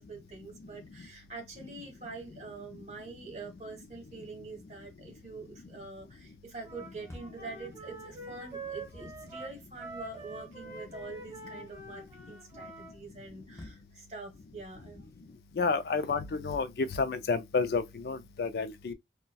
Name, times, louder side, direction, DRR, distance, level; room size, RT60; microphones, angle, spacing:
voice 1, 0.0-15.1, right 3 dB, 40° right, 1.2 m, -45 dB
Wind instrument woodwind instrument, 6.6-13.0, right 3 dB, 20° right, 1.3 m, -45 dB
sound 1, 7.1-7.5 8.4-9.4 13.6-13.9 14.5-15.3, left 1 dB, 15° left, 0.6 m, -51 dB
voice 2, 15.6-18.9, left 4 dB, 60° left, 0.4 m, -30 dB
4.0 x 2.2 x 2.2 m
head